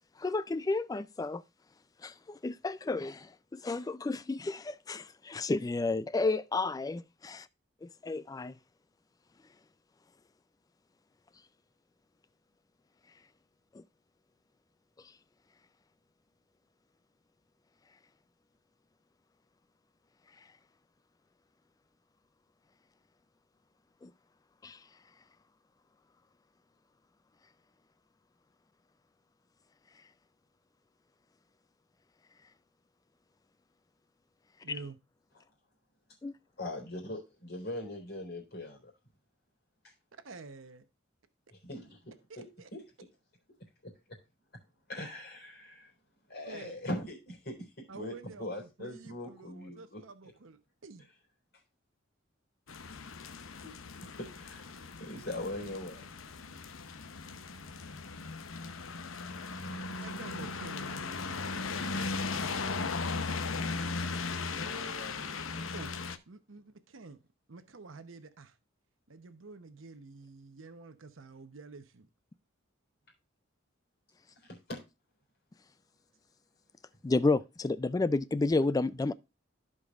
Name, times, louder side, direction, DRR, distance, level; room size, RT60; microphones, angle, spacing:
voice 1, 0.2-1.4 2.0-7.5 7.8-8.5 13.7-13.8 24.0-24.1 24.6-24.8 36.2-36.4 77.0-79.1, left 3 dB, 20° left, 0.3 m, -31 dB
voice 2, 34.6-35.0 40.1-40.8 42.3-42.7 46.4-46.8 47.9-51.1 58.3-58.4 60.0-62.1 65.7-65.9 66.3-67.2 67.5-68.6 69.1-72.1, right 4 dB, 80° right, 0.9 m, -49 dB
voice 3, 36.6-38.9 39.8-39.9 41.5-42.8 43.8-44.2 44.9-45.9 46.3-50.0 53.6-53.7 54.0-56.0 64.5-66.1 74.4-74.8, left 1 dB, 55° left, 3.7 m, -42 dB
sound 1, 52.7-66.2, left 4 dB, 85° left, 0.8 m, -37 dB
15.0 x 5.1 x 2.4 m
head